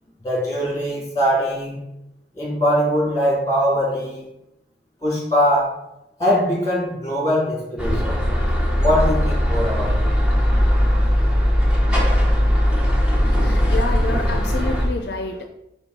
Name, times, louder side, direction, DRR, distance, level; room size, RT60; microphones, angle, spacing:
voice 1, 0.2-1.8 2.3-4.3 5.0-5.8 6.2-8.1 8.8-10.0, equal, 20° left, -4 dB, 2.4 m, -21 dB
sound 1, 7.8-14.8, equal, 5° right, 0.9 m, -19 dB
voice 2, 13.1-15.4, left 3 dB, 65° left, 5 dB, 0.5 m, -29 dB
4.5 x 4.2 x 5.2 m, 0.87 s
head